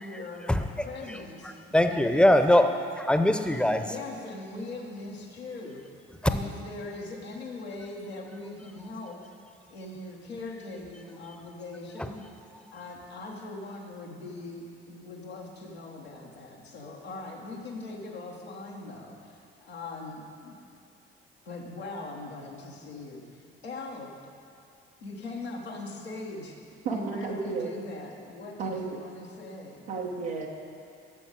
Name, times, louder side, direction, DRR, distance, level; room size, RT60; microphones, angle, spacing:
voice 1, 0.0-0.5 0.8-2.4 3.8-5.8 6.2-9.3 9.7-12.2 12.7-20.6 21.4-24.1 25.0-26.6 26.9-29.8, left 2 dB, 85° left, -3 dB, 1.3 m, -40 dB
voice 2, 1.7-2.7 3.0-3.9, left 1 dB, 5° left, 8 dB, 0.8 m, -21 dB
voice 3, 26.8-27.7 28.6-29.0 29.9-30.5, right 4 dB, 75° right, -2 dB, 1.1 m, -32 dB
14.5 x 7.1 x 4.9 m, 2.4 s
figure-of-eight pair, 45°, 31 cm